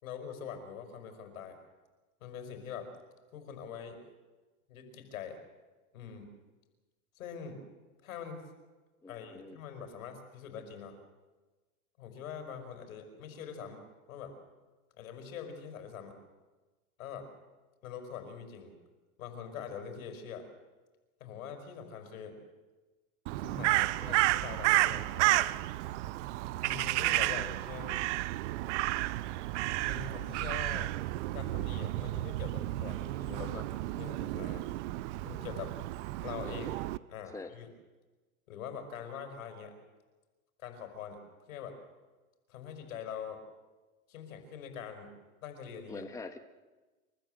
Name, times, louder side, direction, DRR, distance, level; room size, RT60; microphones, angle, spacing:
voice 1, 0.0-1.6 2.2-2.9 3.3-4.0 4.7-5.4 5.9-6.3 7.2-7.6 8.0-8.4 9.1-11.0 12.0-13.8 14.1-14.3 15.0-16.1 17.0-17.3 17.8-18.7 19.2-20.5 21.2-22.4 23.4-25.5 26.6-28.1 29.9-30.9 31.3-33.7 33.9-34.7 35.2-35.7 36.2-36.8 37.1-37.7 38.5-39.7 40.6-41.2 41.5-41.8 42.5-43.4 44.1-45.1 45.4-46.0, left 7 dB, 70° left, 6 dB, 5.5 m, -43 dB
voice 2, 9.0-9.6 24.0-24.2 36.4-36.7 37.3-37.5 45.9-46.4, left 3 dB, 5° left, 7 dB, 1.2 m, -44 dB
Crow, 23.3-37.0, right 18 dB, 55° right, 0.8 m, -32 dB
29.5 x 14.0 x 7.9 m, 1.2 s
hypercardioid pair, 105°, 43 cm